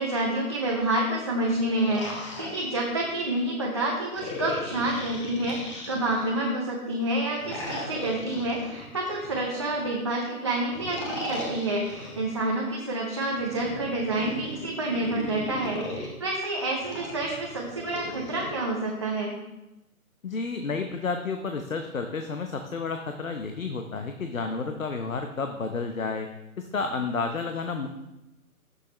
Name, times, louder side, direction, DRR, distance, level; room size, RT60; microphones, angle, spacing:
voice 1, 0.0-19.3, right 1 dB, 20° right, -3 dB, 0.6 m, -28 dB
sound 1, 1.4-3.3 4.1-6.5 7.4-9.9 10.7-12.3 13.3-16.1 16.8-18.5, left 1 dB, 20° left, 1.2 m, -38 dB
voice 2, 20.2-26.3 26.6-27.9, left 4 dB, 65° left, 6 dB, 0.9 m, -31 dB
14.5 x 6.4 x 3.2 m, 0.95 s
figure-of-eight pair, 140°, 44 cm